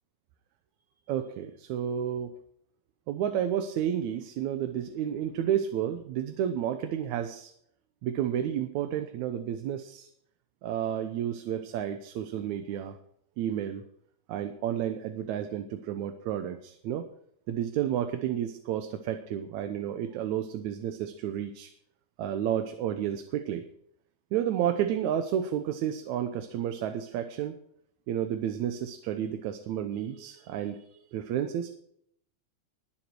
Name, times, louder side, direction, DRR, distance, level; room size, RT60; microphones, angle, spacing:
voice 1, 1.1-2.3 3.1-7.5 8.0-10.1 10.6-13.0 13.4-13.8 14.3-17.1 17.5-21.7 22.2-23.6 24.3-27.6 28.1-31.7, right 10 dB, 80° right, 8 dB, 2.2 m, -31 dB
21.0 x 7.3 x 4.7 m, 0.70 s
omnidirectional pair, 3.3 m